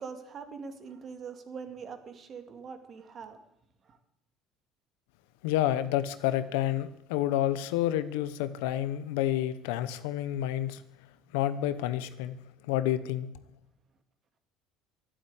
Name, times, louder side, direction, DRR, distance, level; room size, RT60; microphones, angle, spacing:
voice 1, 0.0-3.4 3.8-4.0, right 5 dB, 45° right, 7 dB, 2.2 m, -43 dB
voice 2, 5.4-10.8 11.3-12.4 12.7-13.3, left 12 dB, 85° left, 13 dB, 0.9 m, -29 dB
11.5 x 10.0 x 8.9 m, 0.80 s
supercardioid pair, 90°, 0 cm